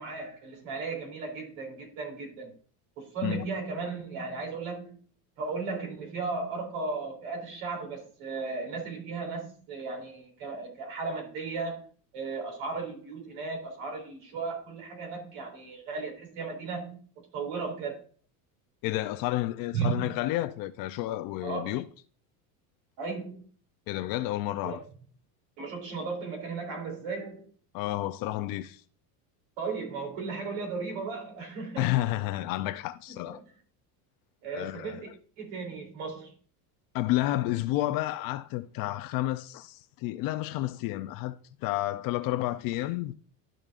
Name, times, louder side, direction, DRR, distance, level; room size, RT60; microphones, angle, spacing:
voice 1, 0.0-2.5 3.0-5.0 5.4-11.9 12.1-17.0 17.3-18.0 19.7-20.1 21.4-21.7 23.0-23.5 24.6-24.8 25.6-27.5 29.6-32.1 33.1-33.4 34.4-35.1 35.4-36.3, right 4 dB, 70° right, 3.2 m, -35 dB
voice 2, 18.8-21.8 23.9-24.8 27.7-28.8 31.8-33.4 34.5-35.0 36.9-41.4 41.6-43.1, left 16 dB, 50° left, 0.5 m, -30 dB
12.5 x 5.1 x 2.4 m
supercardioid pair, 135°, 47 cm